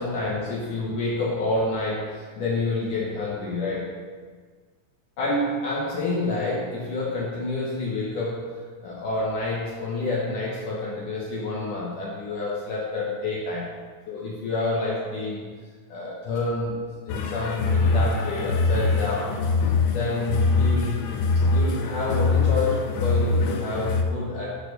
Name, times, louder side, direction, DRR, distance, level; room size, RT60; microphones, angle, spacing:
voice 1, 0.0-4.0 5.2-8.6 8.8-13.7 14.1-15.5 15.9-19.4 19.9-21.0 21.5-24.6, left 2 dB, 65° left, -5 dB, 2.1 m, -28 dB
sound 1, 17.1-24.0, left 4 dB, 85° left, 2.8 m, -23 dB
9.3 x 4.2 x 6.6 m, 1.5 s
omnidirectional pair, 5.0 m